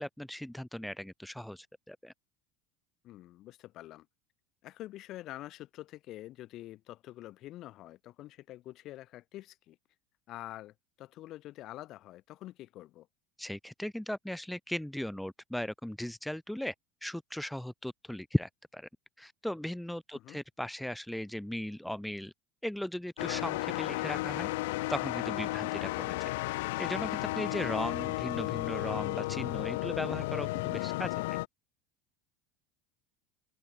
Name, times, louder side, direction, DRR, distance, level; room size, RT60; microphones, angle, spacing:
voice 1, 0.0-2.1 13.4-16.7 17.0-18.9 19.2-22.3 22.6-24.5 24.9-26.2 26.8-31.4, left 1 dB, 5° left, 1.2 m, -37 dB
voice 2, 3.0-4.1 4.6-9.8 10.3-13.1 20.1-20.4 27.9-28.0, left 15 dB, 50° left, 6.2 m, -46 dB
sound 1, 23.2-31.5, left 21 dB, 70° left, 1.3 m, -33 dB
open air
hypercardioid pair, 75°, 0 cm